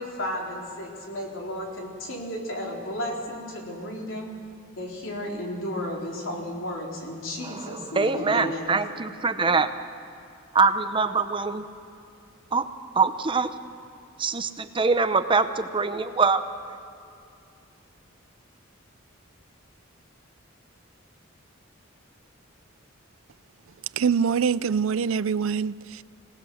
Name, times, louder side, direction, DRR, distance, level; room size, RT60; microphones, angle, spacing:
voice 1, 0.0-4.3 4.8-8.6, left 1 dB, 70° left, 4.2 m, -33 dB
voice 2, 7.4-9.7 10.5-11.7 12.5-12.7 12.9-13.5 14.2-16.4, right 4 dB, 25° right, 0.7 m, -24 dB
voice 3, 24.0-26.0, right 6 dB, 85° right, 0.4 m, -24 dB
26.5 x 18.0 x 6.4 m
head